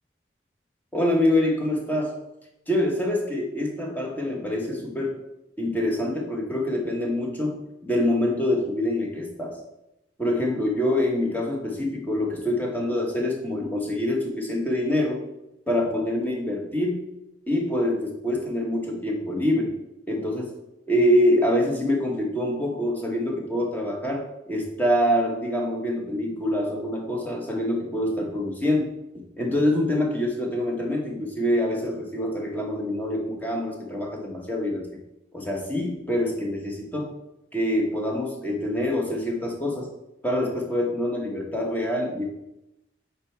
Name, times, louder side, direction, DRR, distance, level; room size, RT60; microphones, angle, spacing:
voice 1, 0.9-2.1 2.7-5.2 5.6-9.6 10.2-15.2 15.7-17.0 17.5-19.8 20.1-20.5 20.9-28.9 29.4-34.9 35.3-37.1 37.5-39.9 40.2-42.3, left 1 dB, 10° left, -1 dB, 1.0 m, -25 dB
5.2 x 4.5 x 4.4 m, 0.91 s
head